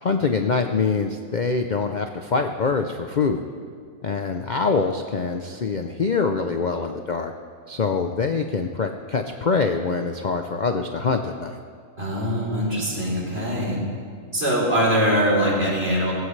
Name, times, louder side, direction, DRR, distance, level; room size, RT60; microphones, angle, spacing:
voice 1, 0.0-3.4 4.0-7.3 7.7-11.5, left 4 dB, 70° left, 5 dB, 0.4 m, -24 dB
voice 2, 12.0-13.8 14.3-16.1, equal, 40° right, -4 dB, 3.8 m, -22 dB
18.5 x 16.0 x 3.2 m, 2.1 s
omnidirectional pair, 1.7 m